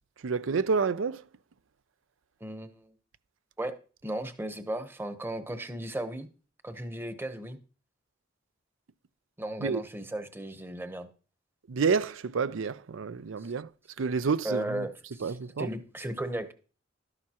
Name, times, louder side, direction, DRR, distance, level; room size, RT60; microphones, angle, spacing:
voice 1, 0.2-1.2 9.6-9.8 11.7-13.7 14.0-14.8 15.2-15.7, right 5 dB, 90° right, 0.5 m, -29 dB
voice 2, 2.4-2.9 3.6-3.7 4.0-6.3 6.6-7.6 9.4-11.1 14.4-16.5, right 1 dB, 10° right, 0.9 m, -35 dB
12.5 x 10.5 x 2.9 m
head